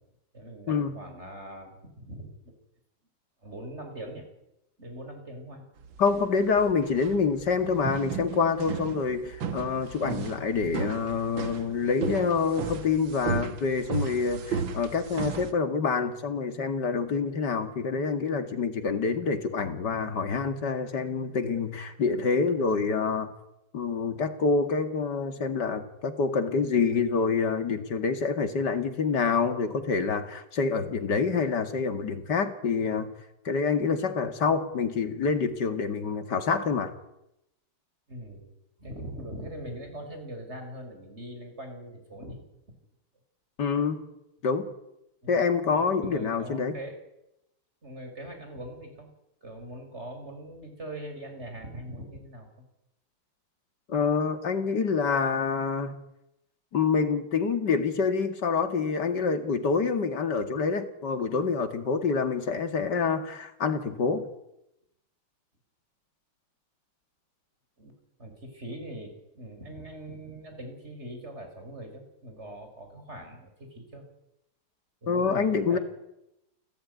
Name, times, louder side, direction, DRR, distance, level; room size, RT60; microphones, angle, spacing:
voice 1, 0.3-2.3 3.4-4.3 4.8-5.7 38.1-38.5 38.8-42.4 45.2-45.3 45.7-47.0 47.8-49.1 49.4-52.7 67.8-67.9 68.2-74.0 75.0-75.8, right 1 dB, 30° right, 5 dB, 6.0 m, -41 dB
sound 1, 5.8-15.5, right 6 dB, 65° right, 2.2 m, -35 dB
voice 2, 6.0-23.3 23.7-33.1 33.4-36.9 43.6-44.0 44.4-44.7 45.3-46.8 53.9-55.9 56.7-64.3 75.1-75.8, left 5 dB, 50° left, 8 dB, 2.7 m, -27 dB
29.0 x 16.0 x 9.6 m, 0.87 s
omnidirectional pair, 2.3 m